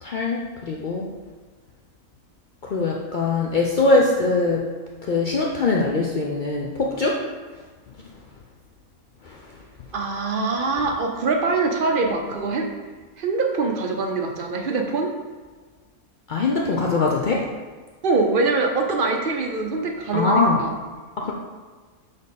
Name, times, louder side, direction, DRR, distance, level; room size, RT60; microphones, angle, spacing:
voice 1, 0.0-1.1 2.6-4.7 5.0-7.2 7.5-8.0 9.2-9.6 16.3-17.5 20.1-20.6 21.2-21.3, left 3 dB, 80° left, -1 dB, 0.4 m, -22 dB
voice 2, 9.9-12.7 13.2-15.1 18.0-20.7, right 3 dB, 55° right, 2 dB, 0.6 m, -23 dB
6.9 x 3.4 x 4.0 m, 1.4 s
omnidirectional pair, 1.5 m